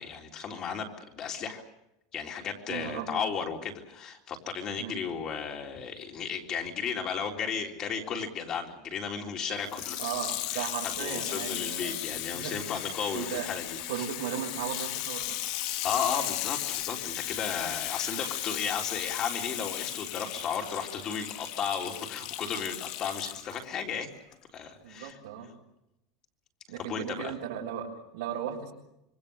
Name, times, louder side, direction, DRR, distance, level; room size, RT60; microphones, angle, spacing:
voice 1, 0.0-1.6 2.1-10.0 10.5-10.7 11.0-13.8 15.8-24.1 24.5-25.1 26.8-27.3, left 6 dB, 30° left, 2 dB, 3.6 m, -34 dB
voice 2, 2.7-3.2 4.8-5.0 10.0-12.7 13.1-13.6 13.9-15.4 17.7-17.8 24.8-25.5 26.7-28.7, right 9 dB, 80° right, -5 dB, 6.6 m, -36 dB
Water tap faucet / Sink (filling or washing), 9.6-23.6 24.3-24.4, left 14 dB, 50° left, 1.3 m, -36 dB
26.5 x 24.0 x 6.9 m, 0.87 s
supercardioid pair, 160°, 2 cm